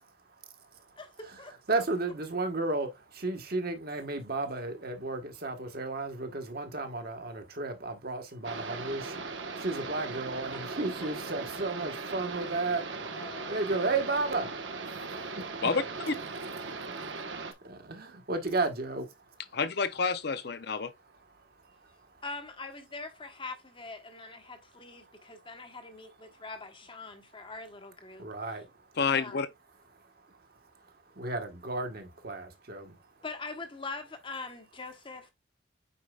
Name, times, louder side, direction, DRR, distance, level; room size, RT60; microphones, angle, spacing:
voice 1, 0.0-15.7 16.6-19.6 20.6-22.2 24.4-26.5 27.0-27.5 28.1-29.0 29.7-33.2, right 3 dB, 50° right, 1.5 m, -35 dB
voice 2, 1.0-1.5 10.5-10.6 13.1-13.5 22.2-28.3 29.1-29.5 33.2-35.3, left 3 dB, 25° left, 1.2 m, -43 dB
sound 1, 8.4-17.5, right 3 dB, 75° right, 1.2 m, -39 dB
voice 3, 19.5-20.9 29.0-29.5, left 5 dB, 55° left, 0.6 m, -28 dB
8.5 x 4.8 x 2.4 m
head